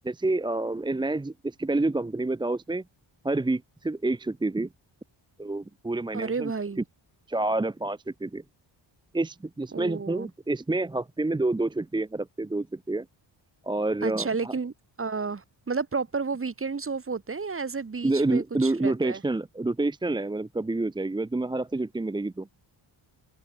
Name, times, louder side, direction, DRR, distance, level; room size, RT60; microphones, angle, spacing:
voice 1, 0.0-2.8 3.2-4.7 5.4-6.5 7.3-8.4 9.1-13.1 13.6-14.5 18.0-22.5, right 2 dB, 10° right, 0.5 m, -28 dB
voice 2, 6.1-6.8 9.7-10.3 14.0-19.2, right 4 dB, 25° right, 1.8 m, -31 dB
wide cardioid pair, 120°, 47 cm